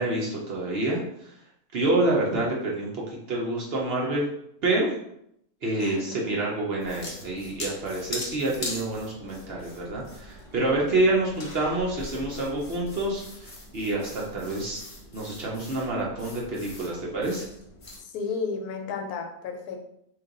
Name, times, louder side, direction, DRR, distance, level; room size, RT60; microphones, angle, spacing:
voice 1, 0.0-1.3 1.7-4.3 4.6-4.9 5.6-14.8 15.1-17.5, right 2 dB, 55° right, -3 dB, 0.8 m, -27 dB
sound 1, 6.8-18.0, left 2 dB, 45° left, 0.4 m, -41 dB
voice 2, 18.0-19.8, left 5 dB, 85° left, 4 dB, 1.1 m, -32 dB
3.1 x 2.5 x 3.7 m, 0.75 s
omnidirectional pair, 1.6 m